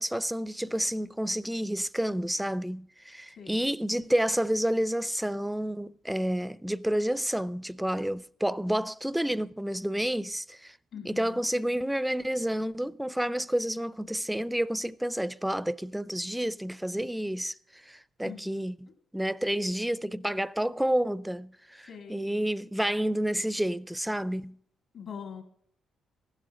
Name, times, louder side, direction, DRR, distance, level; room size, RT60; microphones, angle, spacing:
voice 1, 0.0-10.8 11.0-24.6, right 1 dB, 5° right, 0.4 m, -30 dB
voice 2, 3.3-3.7 10.9-11.4 18.2-18.9 21.8-22.4 24.9-25.4, left 7 dB, 70° left, 2.6 m, -43 dB
15.5 x 11.5 x 3.7 m
cardioid pair, 90°, 0 cm